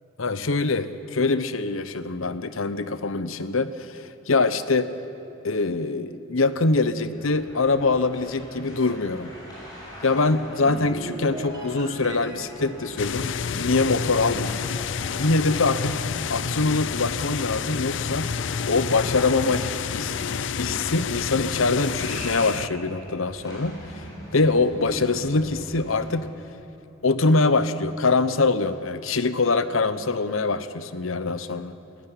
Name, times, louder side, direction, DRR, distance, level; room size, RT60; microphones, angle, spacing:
voice 1, 0.2-4.9 5.4-9.3 10.0-14.6 15.1-16.0 16.3-18.3 18.7-19.7 19.9-24.0 24.3-26.3 27.0-31.7, left 3 dB, 80° left, 13 dB, 1.0 m, -24 dB
sound 1, 7.1-26.2, equal, 20° left, 7.1 m, -43 dB
sound 2, 10.1-14.7 15.0-15.3, equal, 20° right, 3.1 m, -39 dB
sound 3, 13.0-22.7, left 6 dB, 60° left, 0.5 m, -29 dB
19.0 x 16.0 x 9.9 m, 3.0 s
head